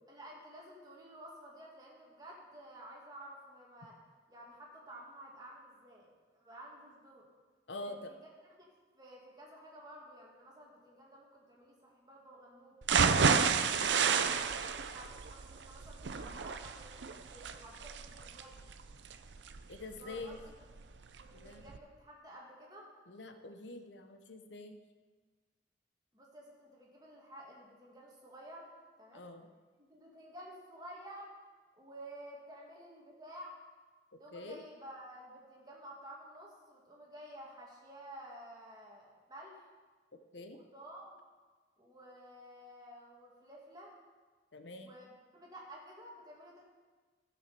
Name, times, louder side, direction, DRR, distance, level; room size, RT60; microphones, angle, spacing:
voice 1, 0.1-4.0 4.3-7.3 7.8-8.3 8.9-12.8 13.2-18.6 19.9-20.6 21.2-22.9 26.1-28.7 29.0-29.3 29.8-31.3 31.7-33.6 34.2-39.7 40.5-41.1 41.8-43.9 44.7-46.6, right 1 dB, 20° right, -3 dB, 2.3 m, -52 dB
voice 2, 7.7-8.1 19.7-20.4 21.3-21.7 23.1-24.8 29.1-29.5 34.3-34.6 40.3-40.6 44.5-44.9, left 2 dB, 90° left, 7 dB, 0.9 m, -45 dB
sound 1, 12.8-20.8 21.2-21.3 21.7-21.8, right 6 dB, 90° right, 0.6 m, -31 dB
13.0 x 6.4 x 6.9 m, 1.4 s
head